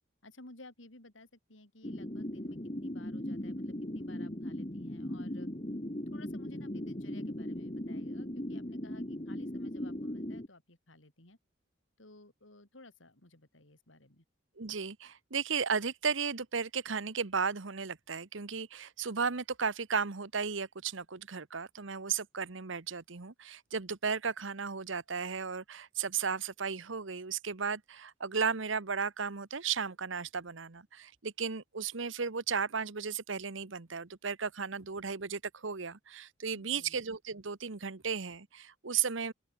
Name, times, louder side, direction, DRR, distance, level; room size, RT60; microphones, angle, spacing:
voice 1, 0.2-5.5 6.1-11.4 12.0-14.2 36.5-37.0, left 2 dB, 75° left, 3.9 m, -56 dB
sound 1, 1.8-10.5, left 1 dB, 30° left, 1.8 m, -38 dB
voice 2, 14.6-39.3, right 6 dB, 75° right, 1.1 m, -35 dB
open air
head